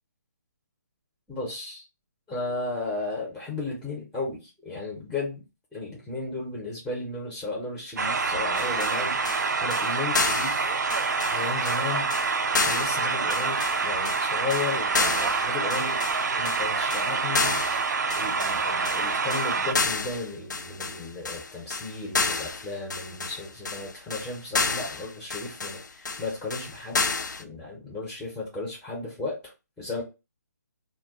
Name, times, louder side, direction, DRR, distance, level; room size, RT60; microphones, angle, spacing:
voice 1, 1.3-1.8 2.3-5.4 5.7-10.6 11.3-12.1 12.6-16.0 16.4-17.9 18.2-27.0 27.4-29.5 29.8-30.0, left 3 dB, 5° left, -4 dB, 0.6 m, -34 dB
sound 1, 8.0-19.7, right 4 dB, 70° right, 0.4 m, -27 dB
sound 2, 8.6-27.4, left 4 dB, 80° left, 0.4 m, -31 dB
2.2 x 2.2 x 3.5 m, 0.27 s
figure-of-eight pair, 155°, 10 cm